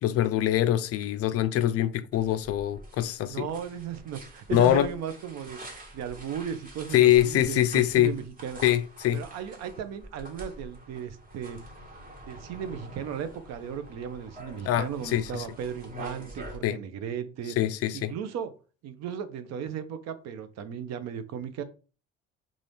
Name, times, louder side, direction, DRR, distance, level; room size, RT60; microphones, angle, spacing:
voice 1, 0.0-3.5 4.5-4.9 6.9-8.1 8.6-9.2 14.7-15.4 16.6-16.8 17.6-18.1, left 12 dB, 50° left, 0.4 m, -24 dB
sound 1, 2.1-16.6, right 1 dB, 25° right, 1.3 m, -46 dB
voice 2, 3.3-5.6 5.9-8.6 9.1-11.8 12.2-17.6 17.9-18.5 18.8-21.6, right 8 dB, 55° right, 0.7 m, -36 dB
3.8 x 2.5 x 3.3 m
hypercardioid pair, 60°, 32 cm